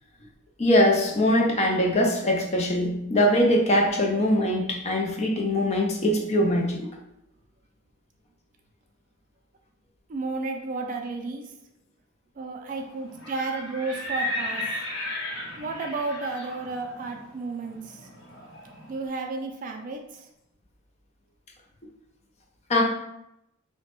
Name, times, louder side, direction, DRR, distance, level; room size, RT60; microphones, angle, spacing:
voice 1, 0.6-6.9 22.7-22.8, left 1 dB, 35° left, 0 dB, 0.5 m, -22 dB
voice 2, 10.1-11.5 12.4-14.6 15.6-18.1 18.9-20.3, right 3 dB, 40° right, 4 dB, 0.3 m, -32 dB
Livestock farm animals working animals, 13.1-18.9, left 1 dB, 65° left, 0.9 m, -35 dB
3.0 x 2.1 x 2.9 m, 0.83 s
head